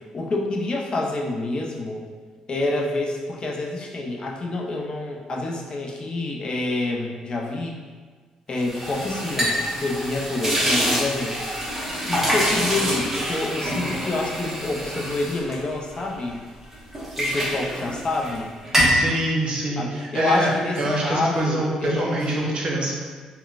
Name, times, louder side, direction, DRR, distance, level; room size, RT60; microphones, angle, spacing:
voice 1, 0.1-2.0 2.5-7.7 8.5-11.5 12.0-16.4 17.2-18.5 19.8-22.5, left 2 dB, 45° left, -1 dB, 0.5 m, -27 dB
sound 1, 8.6-16.3 16.7-18.4 18.6-19.1, equal, 15° right, 1.1 m, -25 dB
voice 2, 18.9-22.9, right 1 dB, 45° right, -3 dB, 0.8 m, -25 dB
3.8 x 2.1 x 2.4 m, 1.5 s
supercardioid pair, 70°, 2 cm